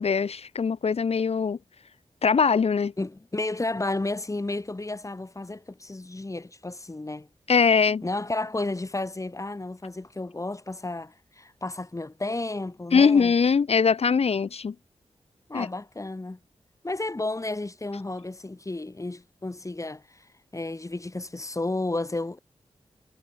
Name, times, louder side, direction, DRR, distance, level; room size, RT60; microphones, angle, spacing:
voice 1, 0.0-1.6 2.2-2.9 7.5-8.0 12.9-14.7 15.5-15.7, left 5 dB, 65° left, 1.3 m, -21 dB
voice 2, 3.0-7.3 8.0-13.3 15.5-16.4 16.8-20.3 20.5-22.4, left 2 dB, 30° left, 7.6 m, -32 dB
cardioid pair, 65°, 11 cm